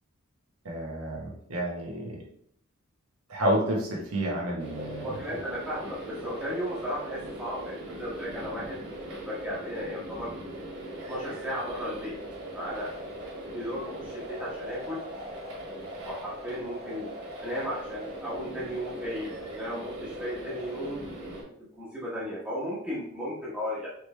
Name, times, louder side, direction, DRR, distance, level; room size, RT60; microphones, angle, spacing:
voice 1, 0.6-2.2 3.3-5.1, right 1 dB, 80° right, -1 dB, 1.0 m, -30 dB
sound 1, 4.6-21.4, right 1 dB, 55° right, 1.7 m, -40 dB
voice 2, 5.0-8.8 9.1-10.3 11.1-12.1 12.5-12.9 13.5-15.0 15.7-21.0 21.7-23.9, equal, 5° right, -8 dB, 1.0 m, -35 dB
4.9 x 3.2 x 3.2 m, 0.67 s
head